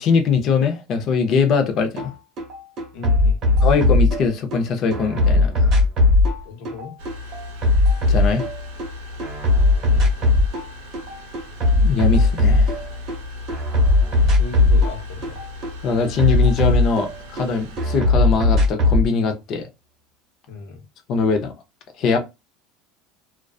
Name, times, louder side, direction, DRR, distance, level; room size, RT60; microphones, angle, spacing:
voice 1, 0.0-2.1 3.6-5.8 8.1-8.5 11.8-12.8 15.8-19.7 21.1-21.5 22.0-22.2, left 5 dB, 40° left, 0.6 m, -21 dB
sound 1, 2.0-2.1 2.4-4.6 4.9-8.9 9.2-10.7 10.9-13.2 13.5-17.5 17.8-19.1, left 2 dB, 35° right, 0.9 m, -18 dB
voice 2, 2.9-3.7 6.4-7.0 9.8-10.4 14.2-15.4 20.5-20.8, left 4 dB, 65° left, 0.9 m, -37 dB
sound 2, 7.0-18.0, left 2 dB, 75° right, 0.6 m, -37 dB
2.4 x 2.3 x 2.3 m
cardioid pair, 150°, 0 cm